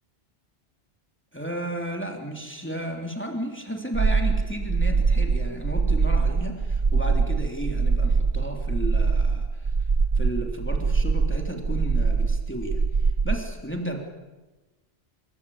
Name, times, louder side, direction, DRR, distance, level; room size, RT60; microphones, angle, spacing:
voice 1, 1.3-9.7 10.1-14.0, right 1 dB, 10° left, 2 dB, 3.4 m, -33 dB
sound 1, 3.9-13.4, right 4 dB, 40° right, 1.1 m, -23 dB
28.0 x 23.5 x 8.6 m, 1.2 s
omnidirectional pair, 1.2 m